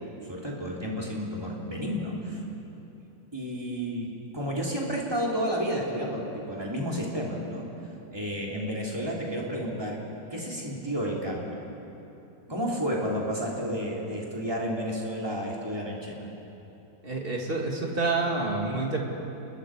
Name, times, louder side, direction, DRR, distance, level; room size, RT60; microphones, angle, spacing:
voice 1, 0.0-2.4 3.3-7.7 8.1-10.0 10.3-11.6 12.5-16.3, equal, 15° right, -3 dB, 3.5 m, -31 dB
voice 2, 17.0-19.0, right 3 dB, 30° right, 0 dB, 2.6 m, -28 dB
28.5 x 21.5 x 5.0 m, 3.0 s
omnidirectional pair, 2.0 m